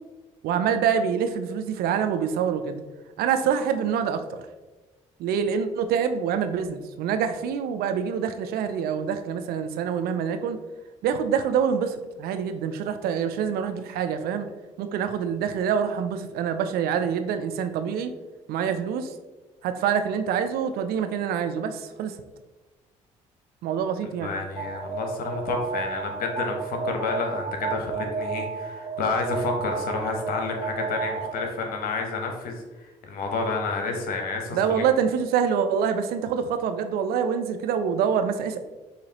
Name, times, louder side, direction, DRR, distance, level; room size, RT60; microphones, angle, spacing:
voice 1, 0.4-2.8 3.2-4.4 5.2-10.6 11.0-14.5 14.8-18.1 18.5-19.1 19.6-22.1 23.6-24.3 34.5-38.6, right 7 dB, 70° right, 9 dB, 0.5 m, -26 dB
voice 2, 24.2-34.8, left 4 dB, 65° left, 3 dB, 1.0 m, -30 dB
Alarm, 24.6-31.6, right 5 dB, 40° right, 1.0 m, -32 dB
6.5 x 2.8 x 2.9 m, 1.2 s
hypercardioid pair, 50°, 16 cm